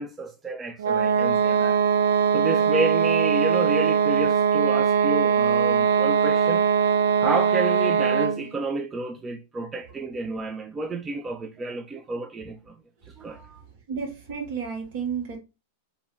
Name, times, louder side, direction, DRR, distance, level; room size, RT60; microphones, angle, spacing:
voice 1, 0.0-1.8 2.3-6.7 7.2-12.8 13.2-13.6, right 3 dB, 20° right, 0.4 m, -30 dB
sound 1, 0.8-8.5, right 7 dB, 85° right, 0.3 m, -21 dB
voice 2, 13.9-15.4, right 6 dB, 60° right, 1.6 m, -31 dB
2.7 x 2.7 x 3.4 m
hypercardioid pair, 125°, 0 cm